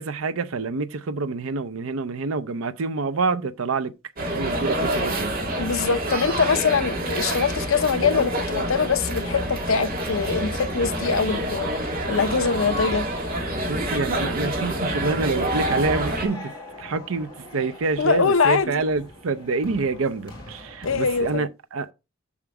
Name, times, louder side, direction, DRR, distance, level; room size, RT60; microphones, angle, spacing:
voice 1, 0.0-3.9 4.2-5.3 13.6-21.9, right 4 dB, 85° right, 0.6 m, -27 dB
sound 1, 4.2-16.3, right 1 dB, 45° right, 2.2 m, -27 dB
voice 2, 5.6-11.7 12.1-13.1 18.0-18.7 20.8-21.5, left 5 dB, 80° left, 0.7 m, -23 dB
sound 2, 7.4-21.4, left 1 dB, 20° left, 4.4 m, -43 dB
7.3 x 5.0 x 4.7 m
head